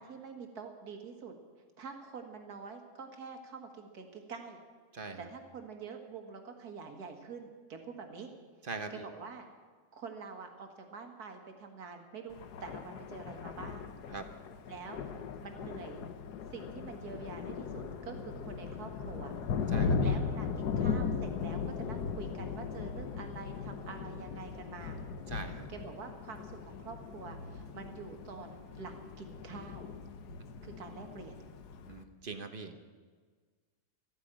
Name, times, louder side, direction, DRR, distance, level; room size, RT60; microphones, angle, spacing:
voice 1, 0.0-1.4 1.8-4.6 5.2-8.3 8.9-9.5 9.9-13.9 14.7-15.1 15.4-16.0 16.5-19.3 19.6-19.7 20.0-25.0 25.7-29.8 30.6-31.4, right 5 dB, 70° right, 4 dB, 2.2 m, -46 dB
voice 2, 4.9-5.3 8.7-9.1 14.1-14.2 19.7-20.2 25.3-25.7 31.9-32.7, right 4 dB, 40° right, 8 dB, 1.1 m, -41 dB
Thunder, 12.3-32.0, left 5 dB, 85° left, 1.5 m, -38 dB
14.0 x 9.9 x 9.0 m, 1.5 s
omnidirectional pair, 1.7 m